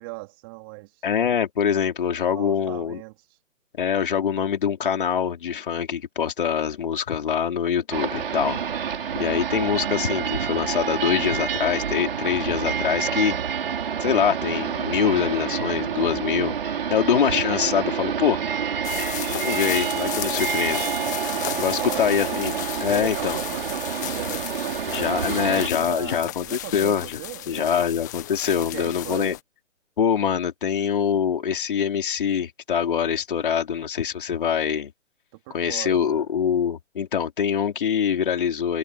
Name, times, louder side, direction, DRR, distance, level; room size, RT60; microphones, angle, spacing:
voice 1, 0.0-1.0 2.3-3.2 21.4-22.4 22.9-27.8 28.6-29.4 35.3-36.3, right 24 dB, 15° right, 3.8 m, -38 dB
voice 2, 1.0-3.0 3.8-8.6 9.2-13.6 14.0-16.5 16.9-18.4 19.3-20.9 21.6-22.5 22.8-23.4 24.9-27.2 27.5-29.4 30.0-34.9 35.5-38.8, left 8 dB, 40° left, 4.7 m, -24 dB
sound 1, 7.9-25.7, right 8 dB, 45° right, 5.7 m, -28 dB
sound 2, 18.8-29.4, left 14 dB, 15° left, 1.3 m, -34 dB
hypercardioid pair, 165°, 40 cm